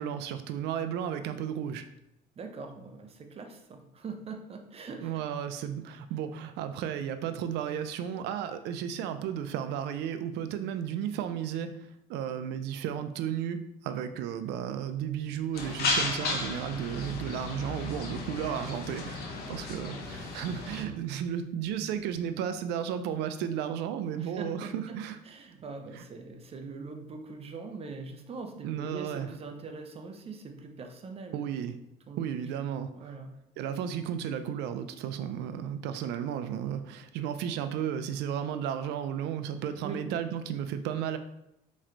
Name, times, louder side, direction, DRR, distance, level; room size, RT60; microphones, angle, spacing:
voice 1, 0.0-1.8 5.0-25.2 25.9-26.0 28.6-29.3 31.3-31.8 32.2-33.1 33.6-41.2, right 9 dB, 90° right, 9 dB, 0.5 m, -34 dB
voice 2, 2.4-5.3 20.7-21.0 24.2-31.5 32.1-32.3 32.9-33.4 39.8-40.0, right 4 dB, 35° right, 5 dB, 0.7 m, -42 dB
sound 1, 15.5-20.8, left 2 dB, 70° left, 0.9 m, -34 dB
4.4 x 3.1 x 3.8 m, 0.83 s
cardioid pair, 110°, 17 cm